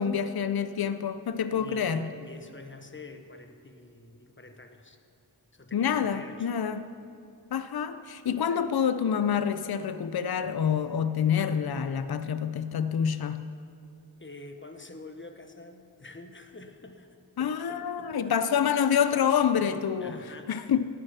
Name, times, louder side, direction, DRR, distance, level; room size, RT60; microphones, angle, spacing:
voice 1, 0.0-2.1 5.7-6.9 7.5-13.5 17.4-20.2 20.5-20.9, left 8 dB, 65° left, 12 dB, 0.5 m, -27 dB
voice 2, 1.5-5.0 5.5-6.5 14.2-18.4 20.0-20.5, left 2 dB, 30° left, 6 dB, 1.0 m, -47 dB
18.5 x 6.7 x 5.7 m, 2.4 s
wide cardioid pair, 45°, 40 cm